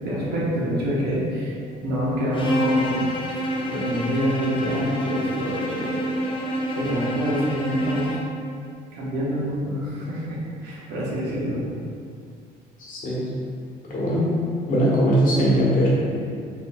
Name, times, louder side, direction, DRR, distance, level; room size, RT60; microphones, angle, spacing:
voice 1, 0.0-3.1 3.7-6.0 6.7-8.2 8.9-11.6 16.1-16.2, equal, 75° right, -6 dB, 1.1 m, -26 dB
Bowed string instrument, 2.3-8.3, equal, 30° left, 0.6 m, -27 dB
voice 2, 12.8-13.3 13.8-14.2 14.7-15.9, equal, 55° left, -6 dB, 1.1 m, -20 dB
4.7 x 2.6 x 2.3 m, 2.3 s
cardioid pair, 110°, 17 cm